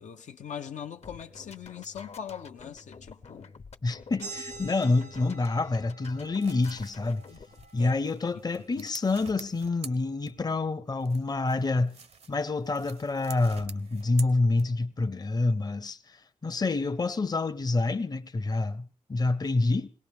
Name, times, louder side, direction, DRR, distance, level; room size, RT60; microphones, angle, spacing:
voice 1, 0.0-3.5 7.8-8.0 8.8-8.9, left 8 dB, 80° left, 0.7 m, -41 dB
sound 1, 1.0-7.7, left 4 dB, 60° left, 1.0 m, -49 dB
voice 2, 3.8-7.3 7.7-12.0 12.3-16.2 16.4-19.9, left 3 dB, 35° left, 0.7 m, -27 dB
sound 2, 4.2-9.4, right 3 dB, 90° right, 1.5 m, -47 dB
sound 3, 6.1-10.7 11.0-15.0, right 5 dB, 60° right, 0.7 m, -48 dB
20.5 x 17.5 x 3.5 m
cardioid pair, 70°, 12 cm